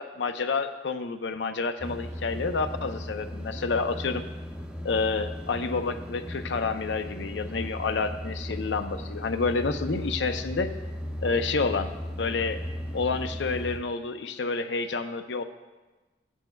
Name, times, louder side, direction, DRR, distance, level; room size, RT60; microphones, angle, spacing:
voice 1, 0.0-4.2 4.8-10.7 11.2-11.9 12.2-12.6 12.9-15.4, left 4 dB, 85° left, 8 dB, 0.6 m, -29 dB
sound 1, 1.8-13.8, equal, 5° right, 0.6 m, -36 dB
16.0 x 8.2 x 2.3 m, 1.2 s
head